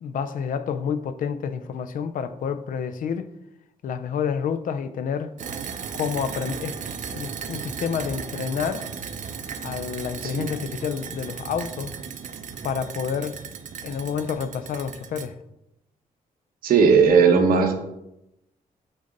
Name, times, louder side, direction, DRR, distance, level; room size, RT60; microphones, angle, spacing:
voice 1, 0.0-3.3 3.8-5.3 5.9-6.8 7.1-8.9 9.6-11.9 12.6-13.4 13.8-15.4, left 7 dB, 70° left, 0.5 m, -29 dB
sound 1, 5.4-15.3, right 6 dB, 60° right, 0.7 m, -36 dB
voice 2, 16.6-17.7, right 5 dB, 90° right, 1.1 m, -17 dB
8.5 x 4.0 x 3.9 m
wide cardioid pair, 145°, 14 cm